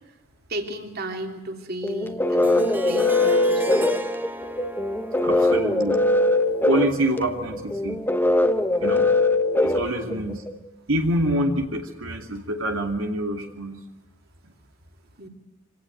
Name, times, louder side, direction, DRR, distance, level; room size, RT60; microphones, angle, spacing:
voice 1, 0.5-3.9 10.0-10.3 15.2-15.3, right 1 dB, 50° right, 4 dB, 3.2 m, -34 dB
sound 1, 1.8-10.5, left 2 dB, 10° left, 1.2 m, -21 dB
Harp, 2.4-7.4, equal, 10° right, 1.1 m, -34 dB
voice 2, 5.2-6.1 6.6-8.1 8.8-9.1 9.6-10.4 10.9-13.8, right 1 dB, 85° right, 3 dB, 2.5 m, -26 dB
25.5 x 18.5 x 9.2 m, 0.99 s
head